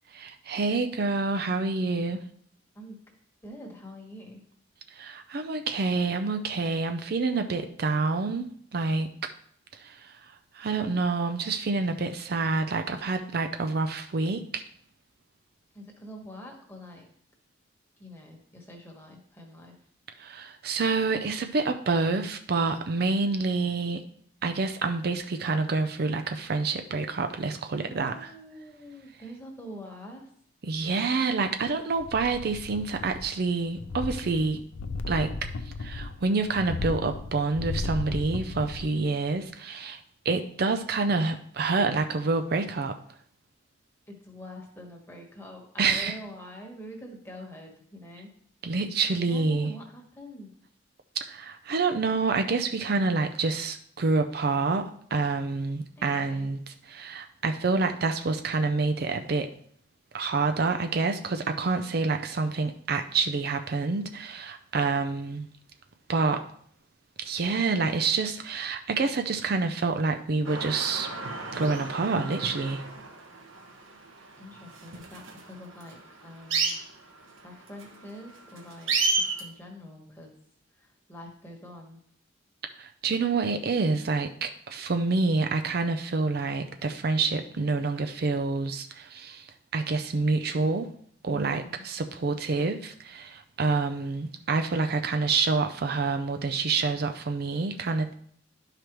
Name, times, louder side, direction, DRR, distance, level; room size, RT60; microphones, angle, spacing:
voice 1, 0.1-2.2 4.9-9.3 9.7-14.6 20.2-24.0 24.4-28.3 30.6-34.6 35.1-35.5 35.8-43.0 45.8-46.2 48.6-49.7 51.3-59.5 60.1-65.5 66.1-66.4 67.2-71.1 71.5-72.8 82.8-90.9 91.2-98.1, right 3 dB, 50° right, 7 dB, 0.4 m, -27 dB
voice 2, 3.4-4.4 15.7-17.1 18.0-19.8 27.8-30.3 44.1-48.4 49.1-50.6 56.0-56.5 74.4-76.8 77.4-80.4 80.8-82.0 91.3-91.8, equal, 10° left, 1 dB, 1.3 m, -45 dB
sound 1, 32.0-33.4 33.7-39.0 39.4-39.5, left 3 dB, 75° left, 0.5 m, -35 dB
sound 2, 70.4-79.4, right 4 dB, 85° right, 1.3 m, -32 dB
11.5 x 4.9 x 3.0 m, 0.63 s
head